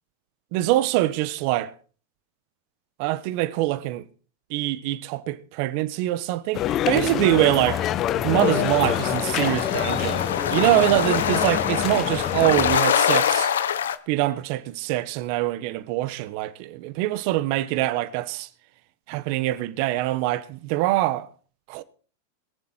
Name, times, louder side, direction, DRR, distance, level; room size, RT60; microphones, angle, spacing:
voice 1, 0.5-1.7 3.0-4.0 4.5-7.9 8.2-10.2 10.5-13.5 14.1-18.5 19.1-21.3 21.7-21.8, right 16 dB, 55° right, 1.2 m, -24 dB
sound 1, 6.5-12.8, left 11 dB, 40° left, 0.9 m, -26 dB
sound 2, 8.4-14.0, left 9 dB, 85° left, 1.1 m, -25 dB
22.5 x 7.6 x 4.5 m
hypercardioid pair, 115°, 0 cm